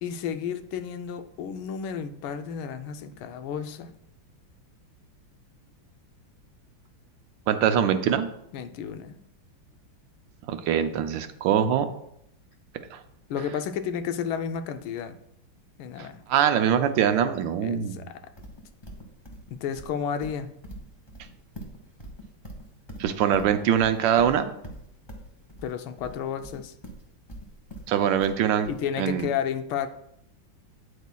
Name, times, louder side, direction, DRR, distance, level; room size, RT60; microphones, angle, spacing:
voice 1, 0.0-3.9 8.5-9.2 13.3-15.2 15.8-16.2 17.6-18.1 19.5-20.5 25.6-26.7 28.6-29.9, left 8 dB, 90° left, 9 dB, 1.4 m, -32 dB
voice 2, 7.5-8.3 10.5-11.9 12.9-13.0 16.0-18.1 23.0-24.5 27.9-28.7 29.0-29.3, right 9 dB, 75° right, 9 dB, 1.3 m, -23 dB
Livestock farm animals working animals, 18.4-29.2, right 1 dB, 15° left, 1.0 m, -43 dB
8.8 x 8.0 x 2.3 m, 0.76 s
omnidirectional pair, 2.2 m